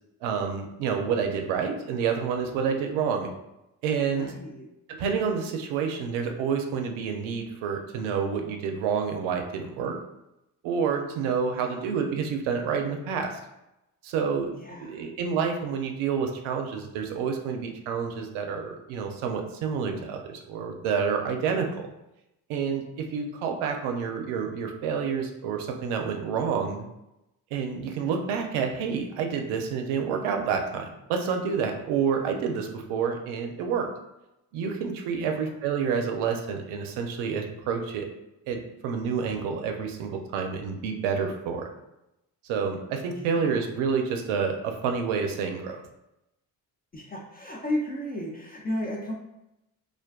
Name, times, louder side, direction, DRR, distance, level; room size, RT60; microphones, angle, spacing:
voice 1, 0.2-3.3 3.8-4.3 4.9-10.0 10.6-13.4 14.0-14.5 14.8-21.8 22.5-26.9 27.5-33.9 34.5-38.1 38.5-41.7 42.4-45.8, right 6 dB, 75° right, 4 dB, 0.6 m, -28 dB
voice 2, 4.1-4.7 11.4-11.9 14.5-15.1 21.5-21.8 27.9-28.1 35.2-35.5 43.1-43.6 46.9-49.1, left 1 dB, 20° left, -1 dB, 0.3 m, -35 dB
2.4 x 2.2 x 2.3 m, 0.90 s
hypercardioid pair, 55°, 49 cm